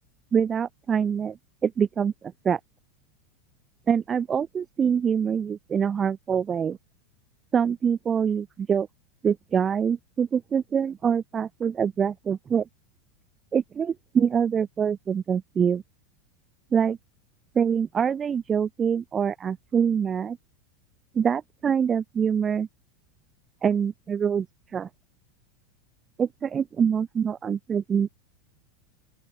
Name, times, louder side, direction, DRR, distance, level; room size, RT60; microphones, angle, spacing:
voice 1, 0.3-1.4 1.6-2.6 3.9-6.8 7.5-8.9 9.2-12.7 13.5-15.8 16.7-17.0 17.5-20.4 21.1-22.7 23.6-24.5 24.7-24.9 26.2-28.1, right 7 dB, 25° right, 1.6 m, -25 dB
open air
supercardioid pair, 135°, 0 cm